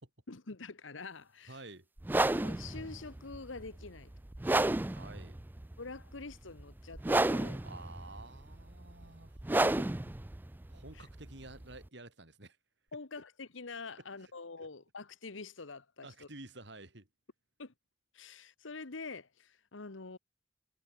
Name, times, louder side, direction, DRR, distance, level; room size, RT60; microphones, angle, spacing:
voice 1, 0.3-1.6 2.3-4.1 5.8-7.6 10.9-11.0 12.9-16.3 17.6-17.7 18.1-20.2, left 3 dB, 85° left, 1.3 m, -46 dB
voice 2, 1.5-1.9 4.9-5.4 7.6-9.4 10.7-12.6 13.1-13.2 14.0-14.3 14.6-14.7 16.0-17.1, right 2 dB, 65° right, 3.9 m, -51 dB
sound 1, 2.0-11.9, right 2 dB, 10° right, 0.3 m, -32 dB
head